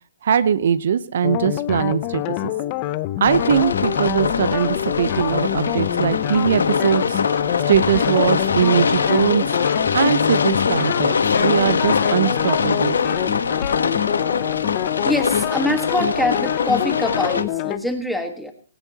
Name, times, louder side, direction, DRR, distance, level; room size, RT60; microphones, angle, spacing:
voice 1, 0.2-2.5 3.2-7.2 7.7-9.4 9.9-13.0, right 8 dB, 55° right, 15 dB, 0.7 m, -21 dB
sound 1, 1.2-17.8, left 16 dB, 25° left, 0.6 m, -26 dB
sound 2, 3.2-17.4, left 5 dB, 90° left, 1.1 m, -23 dB
voice 2, 15.0-18.5, left 1 dB, ahead, 5 dB, 1.4 m, -24 dB
17.5 x 17.0 x 2.9 m, 0.38 s
hypercardioid pair, 160°, 0 cm